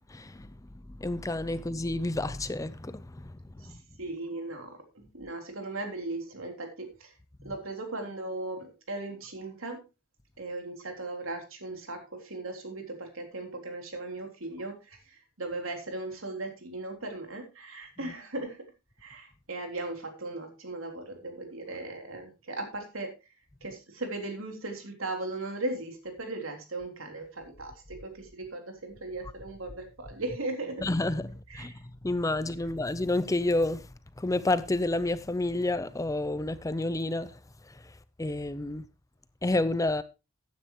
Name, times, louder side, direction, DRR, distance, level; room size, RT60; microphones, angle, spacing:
voice 1, 0.1-0.5 1.0-3.6 30.8-31.7 32.0-33.9 34.2-37.3 38.2-38.8 39.4-40.0, left 2 dB, 15° left, 0.5 m, -29 dB
voice 2, 3.6-7.1 7.4-9.8 10.4-18.6 19.0-23.1 23.6-30.8 31.5-31.8, right 2 dB, 80° right, 3.5 m, -38 dB
14.5 x 9.7 x 3.0 m
head